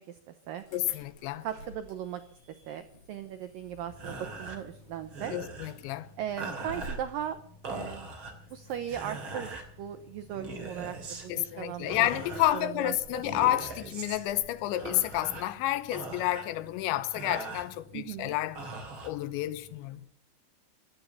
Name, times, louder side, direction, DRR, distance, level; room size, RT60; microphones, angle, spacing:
Insect / Alarm, 0.6-20.0, equal, 30° left, 8.0 m, -53 dB
voice 1, 0.7-1.5 5.3-6.1 11.3-18.6 19.0-20.1, left 15 dB, 90° left, 3.3 m, -30 dB
voice 2, 1.4-2.2 2.7-5.3 6.2-7.4 7.7-8.1 8.5-13.2 17.9-18.4, right 10 dB, 80° right, 2.0 m, -38 dB
sound 1, 3.9-19.8, right 3 dB, 35° right, 3.0 m, -43 dB
16.5 x 12.5 x 6.9 m
omnidirectional pair, 5.1 m